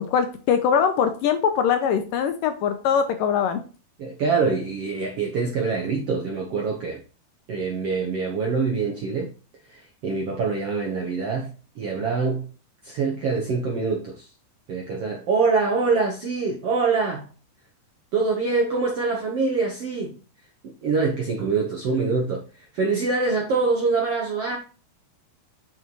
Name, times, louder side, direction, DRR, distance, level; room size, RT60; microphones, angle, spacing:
voice 1, 0.0-3.6, left 7 dB, 75° left, 2.2 m, -22 dB
voice 2, 4.0-7.0 7.5-9.3 9.7-12.5 12.8-14.3 14.7-17.3 18.1-20.2 20.6-24.6, right 4 dB, 65° right, 1.5 m, -25 dB
7.0 x 6.9 x 3.0 m
omnidirectional pair, 4.4 m